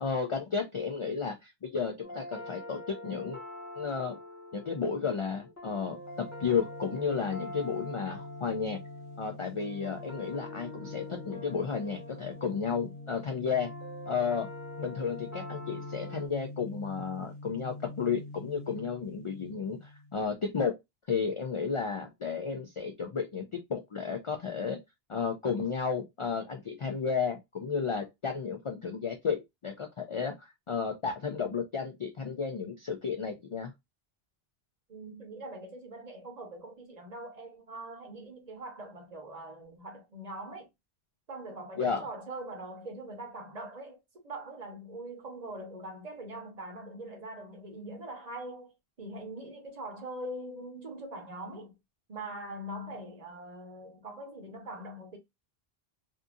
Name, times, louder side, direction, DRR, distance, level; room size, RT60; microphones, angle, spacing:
voice 1, 0.0-3.4 3.8-4.2 4.5-8.8 9.2-13.7 14.1-14.5 14.8-20.7 21.1-24.8 25.1-33.7 41.8-42.0, left 5 dB, 55° left, 0.3 m, -33 dB
sound 1, 2.0-16.3, left 1 dB, 20° left, 0.8 m, -45 dB
sound 2, 5.8-20.4, left 2 dB, 75° left, 0.8 m, -46 dB
voice 2, 34.9-40.7 41.3-51.7 52.1-55.2, right 1 dB, 45° right, 0.8 m, -42 dB
2.6 x 2.5 x 2.3 m
omnidirectional pair, 1.0 m